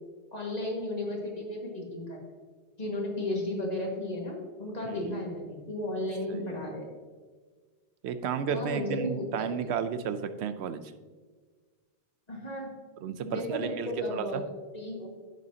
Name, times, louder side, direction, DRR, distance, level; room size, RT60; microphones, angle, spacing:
voice 1, 0.3-2.2 2.8-6.9 8.5-9.5 12.3-12.7 13.2-14.4 14.7-15.1, left 1 dB, 40° left, -1 dB, 1.9 m, -34 dB
voice 2, 8.0-10.8 13.0-14.4, right 7 dB, 80° right, 11 dB, 0.9 m, -33 dB
10.5 x 8.1 x 2.8 m, 1.5 s
omnidirectional pair, 1.1 m